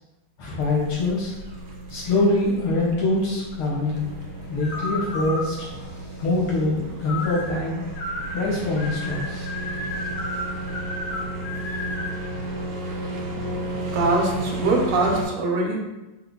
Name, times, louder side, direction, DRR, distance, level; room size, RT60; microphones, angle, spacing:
voice 1, 0.4-1.4 1.9-4.1 4.5-5.7 6.2-7.8 8.3-9.5, left 2 dB, 85° left, -5 dB, 2.2 m, -24 dB
sound 1, 0.6-15.2, right 1 dB, 60° right, 1.0 m, -33 dB
sound 2, 3.9-12.3, left 2 dB, 65° left, 1.0 m, -34 dB
voice 2, 13.9-15.8, right 3 dB, 85° right, -1 dB, 1.7 m, -22 dB
5.3 x 2.2 x 3.7 m, 1.0 s
omnidirectional pair, 2.3 m